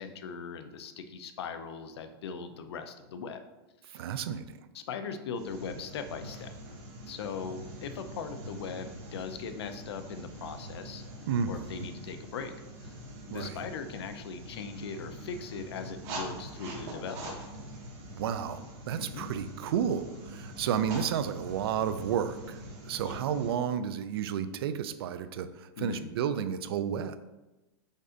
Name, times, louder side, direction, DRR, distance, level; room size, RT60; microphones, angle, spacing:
voice 1, 0.0-3.4 3.9-4.0 4.7-6.5 7.1-11.0 11.5-12.6 12.8-13.0 13.3-17.5 19.0-19.3 23.0-23.2 25.8-26.1, left 5 dB, 75° left, 8 dB, 0.5 m, -39 dB
voice 2, 3.9-4.6 11.3-11.9 13.3-13.6 18.2-27.2, right 8 dB, 65° right, 12 dB, 0.4 m, -32 dB
sound 1, 5.3-23.5, right 1 dB, 40° right, 1.2 m, -44 dB
5.2 x 2.5 x 3.8 m, 1.1 s
supercardioid pair, 165°, 14 cm